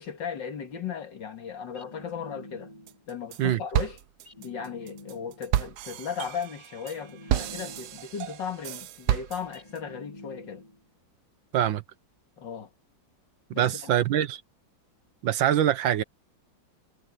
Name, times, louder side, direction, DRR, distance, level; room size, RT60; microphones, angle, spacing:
voice 1, 0.0-2.7 3.1-4.0 4.4-10.6 12.4-12.7 13.5-13.9, left 7 dB, 70° left, 2.6 m, -36 dB
sound 1, 1.7-3.1 4.2-5.6 6.8-8.2 9.5-10.9, left 1 dB, 20° left, 2.0 m, -48 dB
sound 2, 2.9-3.4 3.7-9.8, right 12 dB, 65° right, 1.1 m, -31 dB
voice 2, 13.6-14.4 15.2-16.0, right 11 dB, 80° right, 1.7 m, -24 dB
omnidirectional pair, 2.1 m